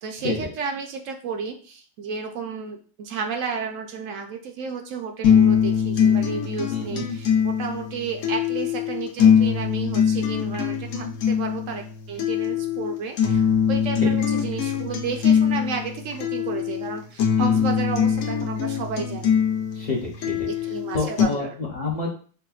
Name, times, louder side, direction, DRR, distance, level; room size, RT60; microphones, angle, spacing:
voice 1, 0.0-19.3 20.4-21.5, right 5 dB, 70° right, 4 dB, 0.9 m, -32 dB
sound 1, 5.2-21.2, left 7 dB, 85° left, 1.0 m, -22 dB
voice 2, 6.7-7.0 14.0-14.1 17.4-17.7 19.7-20.5 20.9-22.1, left 3 dB, 45° left, -4 dB, 0.6 m, -28 dB
4.8 x 2.1 x 2.3 m, 0.41 s
omnidirectional pair, 1.4 m